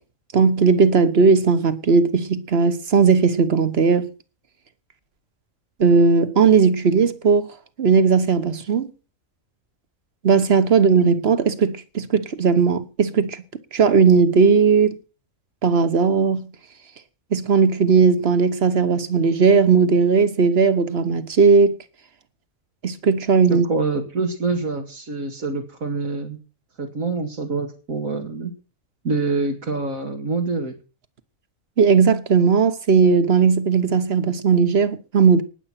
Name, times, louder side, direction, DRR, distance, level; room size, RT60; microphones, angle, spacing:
voice 1, 0.3-4.1 5.8-7.5 7.8-8.9 10.2-13.4 13.7-15.0 15.6-16.5 17.3-21.8 22.8-23.7 31.8-35.4, right 5 dB, 50° right, 1.4 m, -17 dB
voice 2, 23.5-26.4 26.8-28.5 29.0-30.8, right 3 dB, 80° right, 2.4 m, -26 dB
19.0 x 7.8 x 5.9 m
omnidirectional pair, 1.4 m